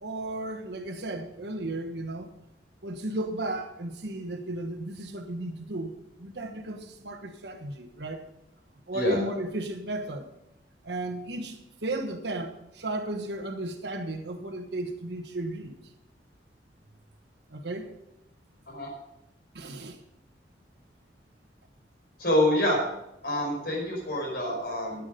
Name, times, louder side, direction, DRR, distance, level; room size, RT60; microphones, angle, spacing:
voice 1, 0.0-2.3 2.8-5.9 6.2-8.3 8.9-10.3 10.8-15.7 17.5-17.9 19.5-20.0, right 2 dB, 75° right, 1.2 m, -34 dB
voice 2, 22.2-22.8 23.2-25.1, left 1 dB, 65° left, 5.1 m, -26 dB
13.5 x 8.4 x 5.2 m
head